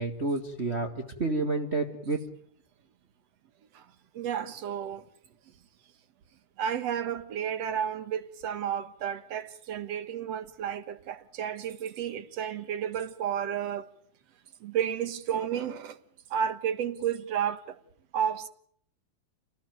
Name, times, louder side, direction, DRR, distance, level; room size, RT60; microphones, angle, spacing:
voice 1, 0.0-2.2, right 3 dB, 25° right, 1.9 m, -30 dB
voice 2, 4.1-5.0 6.6-13.9 14.6-16.0 16.3-17.8 18.1-18.5, right 9 dB, 60° right, 2.5 m, -32 dB
29.0 x 19.0 x 9.4 m
omnidirectional pair, 3.3 m